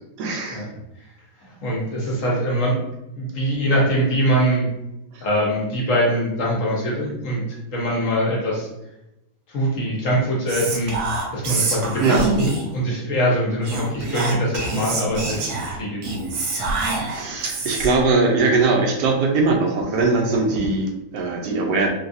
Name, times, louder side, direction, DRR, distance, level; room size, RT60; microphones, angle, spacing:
voice 1, 0.2-0.7 5.1-5.2 12.0-12.3 17.1-21.9, right 3 dB, 85° right, 1 dB, 1.3 m, -21 dB
voice 2, 1.4-2.8 3.1-4.6 5.2-8.7 9.5-10.9 11.3-16.0, equal, 55° left, -3 dB, 1.1 m, -23 dB
Whispering, 10.5-12.8 13.6-18.1, right 3 dB, 70° right, 1.2 m, -26 dB
3.9 x 2.3 x 2.6 m, 0.91 s
omnidirectional pair, 1.8 m